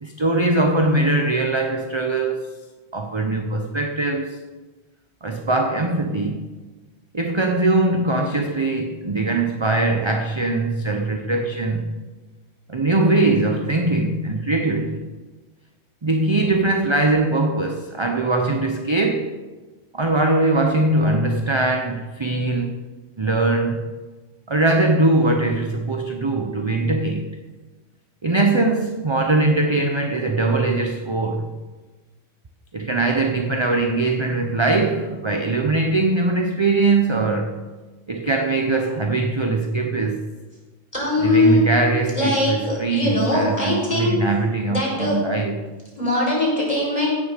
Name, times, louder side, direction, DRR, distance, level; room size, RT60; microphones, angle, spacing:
voice 1, 0.0-2.5 2.9-4.4 5.2-6.5 7.1-11.9 12.7-15.1 16.0-19.3 19.9-22.7 23.2-23.8 24.5-27.3 28.2-31.5 32.7-37.6 38.1-40.2 41.2-45.5, right 2 dB, 25° right, 4 dB, 0.8 m, -21 dB
voice 2, 40.9-41.6 42.2-44.2 44.7-45.2 46.0-47.1, left 1 dB, 30° left, -4 dB, 5.5 m, -21 dB
16.0 x 7.4 x 6.7 m, 1.3 s
omnidirectional pair, 1.3 m